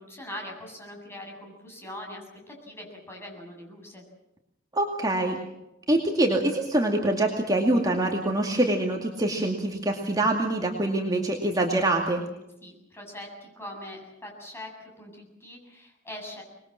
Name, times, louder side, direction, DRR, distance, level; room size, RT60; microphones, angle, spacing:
voice 1, 0.0-4.0 12.6-16.4, left 1 dB, 15° left, 1 dB, 7.8 m, -42 dB
voice 2, 4.7-5.4 5.9-12.2, right 1 dB, 20° right, 0 dB, 2.4 m, -25 dB
25.5 x 21.5 x 7.6 m, 0.91 s
head